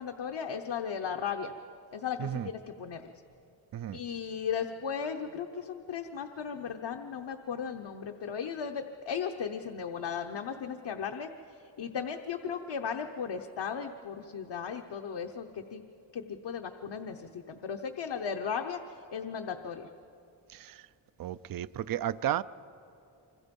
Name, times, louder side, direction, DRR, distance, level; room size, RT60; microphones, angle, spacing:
voice 1, 0.0-1.5 1.9-3.0 3.9-11.3 11.8-15.8 16.1-18.8 19.1-19.9, left 7 dB, 60° left, 0.9 m, -36 dB
voice 2, 2.2-2.5 3.7-4.0 20.5-20.8 21.2-22.4, right 11 dB, 50° right, 0.4 m, -33 dB
26.5 x 25.0 x 5.3 m
wide cardioid pair, 165°, 47 cm